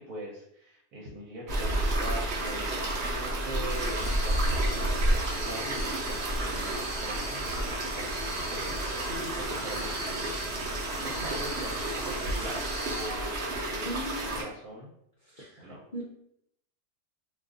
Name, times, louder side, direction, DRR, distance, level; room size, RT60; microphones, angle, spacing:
voice 1, 0.0-12.6 12.9-13.9 14.2-14.9 15.6-15.8, right 1 dB, 85° right, -5 dB, 1.2 m, -42 dB
sound 1, 1.5-14.4, right 1 dB, 50° right, 0.9 m, -31 dB
sound 2, 3.7-13.1, right 1 dB, 65° right, 1.2 m, -42 dB
voice 2, 13.8-14.2 15.4-15.5 15.9-16.0, right 1 dB, 55° left, -6 dB, 0.5 m, -35 dB
2.6 x 2.4 x 3.6 m, 0.74 s
omnidirectional pair, 1.6 m